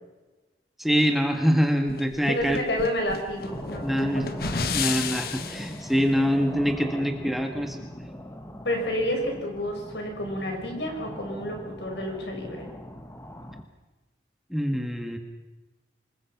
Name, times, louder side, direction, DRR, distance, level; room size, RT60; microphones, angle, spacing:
voice 1, 0.8-2.6 3.8-4.3 4.7-7.8 14.5-15.2, equal, ahead, 4 dB, 1.7 m, -24 dB
sound 1, 1.9-5.8, left 5 dB, 55° left, 1.2 m, -32 dB
voice 2, 2.3-4.4 8.6-12.7, left 1 dB, 80° left, 2 dB, 6.1 m, -30 dB
sound 2, 3.3-13.6, left 1 dB, 15° left, 1.3 m, -40 dB
26.0 x 21.5 x 6.0 m, 1.2 s
head